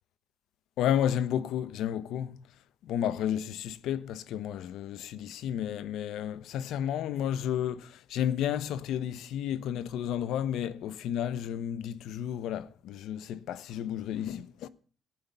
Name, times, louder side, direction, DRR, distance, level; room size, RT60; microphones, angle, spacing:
voice 1, 0.8-2.4 2.8-14.7, left 10 dB, 85° left, 1.1 m, -32 dB
18.5 x 11.5 x 5.7 m
cardioid pair, 90°, 0 cm